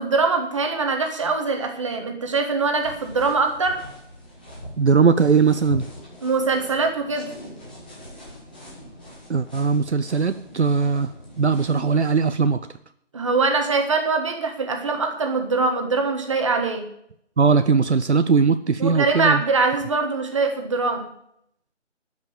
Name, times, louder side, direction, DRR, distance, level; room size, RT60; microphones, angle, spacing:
voice 1, 0.0-3.8 6.2-7.3 13.1-16.9 18.8-21.1, right 4 dB, 25° right, 4 dB, 1.5 m, -23 dB
sound 1, 2.8-12.1, left 1 dB, 10° left, 1.0 m, -41 dB
voice 2, 4.8-5.9 9.3-12.7 17.4-19.4, right 5 dB, 65° right, 10 dB, 0.7 m, -19 dB
12.5 x 5.9 x 9.1 m, 0.71 s
figure-of-eight pair, 165°, 36 cm